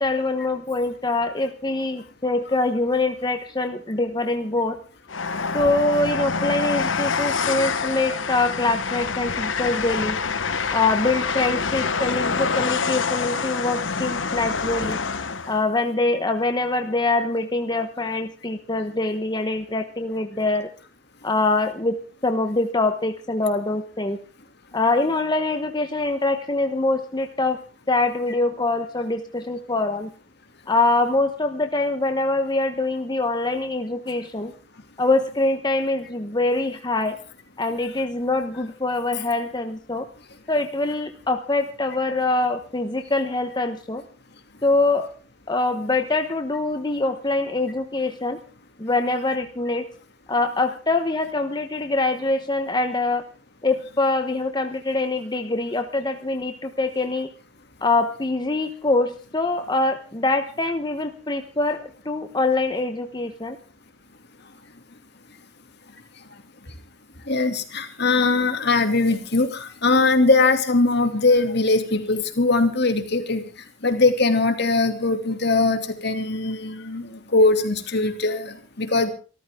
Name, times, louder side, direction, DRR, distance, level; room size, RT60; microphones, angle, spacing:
voice 1, 0.0-4.8 5.5-10.2 10.7-15.0 15.5-20.7 21.2-22.0 22.2-24.2 24.7-27.6 27.9-30.1 30.7-34.5 35.0-37.2 37.6-40.0 40.5-44.0 44.6-45.1 45.5-48.4 48.8-49.9 50.3-53.2 53.6-57.3 57.8-63.6, left 2 dB, 20° left, 6 dB, 1.1 m, -24 dB
Train, 5.1-15.6, left 5 dB, 80° left, 1.2 m, -26 dB
voice 2, 67.3-73.4 73.8-79.1, left 3 dB, 60° left, 6 dB, 2.6 m, -21 dB
26.5 x 13.5 x 3.7 m, 0.37 s
head